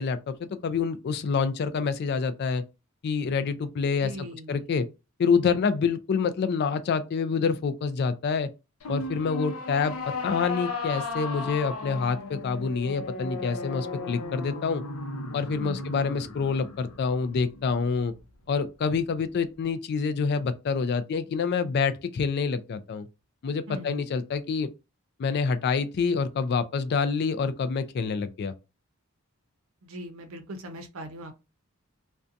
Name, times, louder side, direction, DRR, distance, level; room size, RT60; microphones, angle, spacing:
voice 1, 0.0-2.6 3.0-4.9 5.2-8.5 8.9-10.0 10.2-14.8 15.3-18.1 18.5-23.1 23.4-24.7 25.2-28.5, left 5 dB, 50° left, 0.3 m, -27 dB
voice 2, 4.0-4.6 15.6-16.0 23.7-24.0 29.8-31.3, equal, 70° right, 0.6 m, -40 dB
sound 1, 8.8-18.2, left 3 dB, 85° left, 0.6 m, -35 dB
2.6 x 2.2 x 2.5 m
head